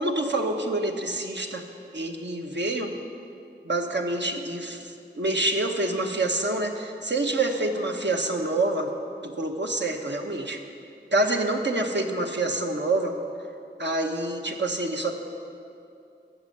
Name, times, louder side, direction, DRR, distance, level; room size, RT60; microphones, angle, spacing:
voice 1, 0.0-1.6 1.9-2.9 3.6-8.9 9.2-10.6 11.1-13.1 13.8-15.1, right 2 dB, 65° right, 2 dB, 1.1 m, -27 dB
13.0 x 6.4 x 7.9 m, 2.6 s
wide cardioid pair, 40°, 19 cm